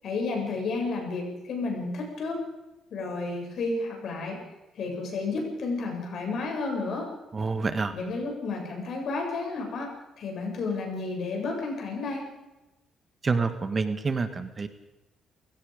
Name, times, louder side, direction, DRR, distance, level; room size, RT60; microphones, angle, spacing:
voice 1, 0.0-2.5 2.9-4.4 4.7-7.2 7.9-12.3, left 3 dB, 65° left, 1 dB, 7.6 m, -31 dB
voice 2, 7.3-7.9 13.2-14.7, right 4 dB, 35° right, 9 dB, 1.7 m, -27 dB
29.5 x 17.0 x 5.3 m, 1.0 s
cardioid pair, 90°, 0 cm